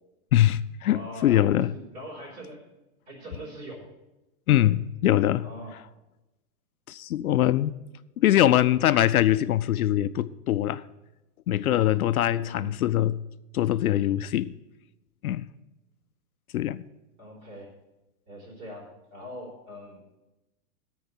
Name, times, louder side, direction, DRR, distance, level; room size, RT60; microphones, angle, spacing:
voice 1, 0.3-1.7 4.5-5.5 6.9-7.7 8.2-10.8 11.5-13.2 13.5-14.5 15.2-15.5 16.5-16.8, left 13 dB, 70° left, 14 dB, 0.6 m, -23 dB
voice 2, 0.9-2.6 3.1-3.9 5.4-5.8 12.3-12.7 17.2-17.7 18.3-20.0, equal, 30° right, -4 dB, 4.6 m, -42 dB
13.5 x 4.7 x 8.6 m, 0.99 s
hypercardioid pair, 175°, 45 cm